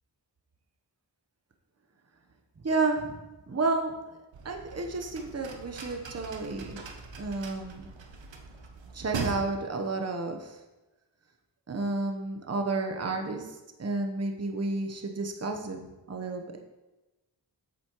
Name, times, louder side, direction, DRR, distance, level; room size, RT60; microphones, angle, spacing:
voice 1, 2.6-3.2 3.5-4.2 4.4-6.8 7.2-7.9 8.9-10.6 11.7-13.5 13.8-16.4, right 3 dB, 35° right, 4 dB, 1.0 m, -31 dB
sound 1, 4.3-9.4, right 4 dB, 90° right, 0.9 m, -40 dB
8.4 x 7.6 x 3.0 m, 1.1 s
cardioid pair, 40°, 43 cm